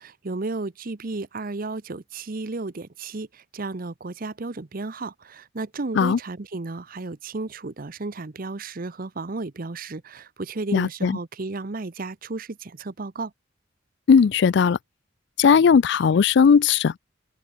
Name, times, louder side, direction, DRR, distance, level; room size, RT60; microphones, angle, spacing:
voice 1, 0.0-13.3, right 3 dB, 50° right, 0.8 m, -33 dB
voice 2, 10.7-11.2 14.1-14.8 15.4-17.0, left 6 dB, 60° left, 0.4 m, -17 dB
head